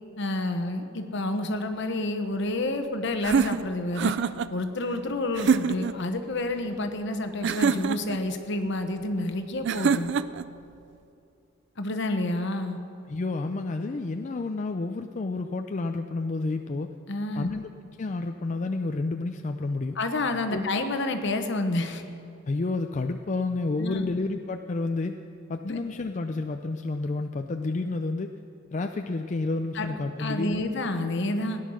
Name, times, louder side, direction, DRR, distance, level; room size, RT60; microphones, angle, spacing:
voice 1, 0.2-4.2 4.5-10.1 11.8-12.8 17.1-17.5 20.0-22.0 23.8-24.0 25.6-25.8 29.7-31.6, left 2 dB, 60° left, 7 dB, 1.1 m, -29 dB
sound 1, 3.2-4.5 5.4-6.0 7.4-8.2 9.7-10.5, right 6 dB, 60° right, 0.4 m, -25 dB
voice 2, 13.1-16.9 17.3-17.7 18.0-20.0 20.5-20.6 22.5-25.2 25.5-28.3 28.7-30.7, left 3 dB, 35° left, 5 dB, 0.4 m, -30 dB
17.0 x 10.5 x 6.4 m, 2.6 s
head